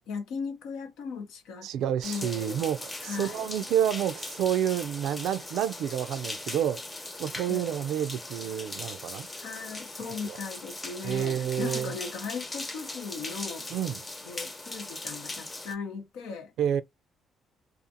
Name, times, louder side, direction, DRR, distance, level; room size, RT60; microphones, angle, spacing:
voice 1, 0.1-1.7 2.0-2.6 3.0-3.5 7.5-7.9 9.4-13.7 14.2-16.5, left 5 dB, 80° left, 0.8 m, -38 dB
voice 2, 1.6-6.8 7.2-9.3 10.2-10.4 11.0-11.9 13.7-14.0 16.6-16.8, right 10 dB, 75° right, 0.4 m, -29 dB
sound 1, 2.0-15.7, left 2 dB, 25° left, 0.9 m, -40 dB
2.5 x 2.4 x 2.6 m
supercardioid pair, 65°, 0 cm